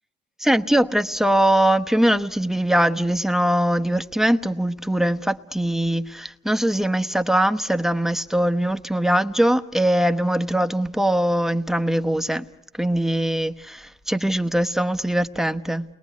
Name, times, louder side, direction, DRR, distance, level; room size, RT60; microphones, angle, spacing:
voice 1, 0.4-12.4 12.8-15.8, right 1 dB, ahead, 1.0 m, -21 dB
29.5 x 21.0 x 9.4 m
cardioid pair, 90°, 20 cm